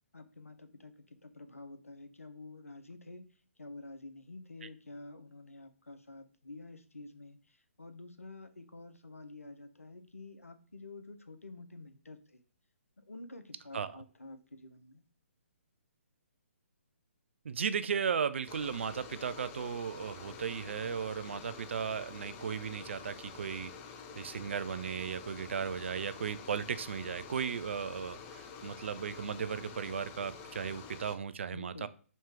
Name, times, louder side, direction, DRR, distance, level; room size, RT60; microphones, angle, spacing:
voice 1, 0.1-3.2 3.6-12.4 13.0-15.0 31.5-31.9, left 2 dB, 90° left, 8 dB, 0.6 m, -49 dB
voice 2, 17.4-23.7 24.2-31.9, right 7 dB, 55° right, 14 dB, 0.4 m, -36 dB
sound 1, 18.5-31.1, left 6 dB, 20° left, 0.4 m, -48 dB
3.1 x 2.8 x 4.6 m, 0.40 s
figure-of-eight pair, 135°, 7 cm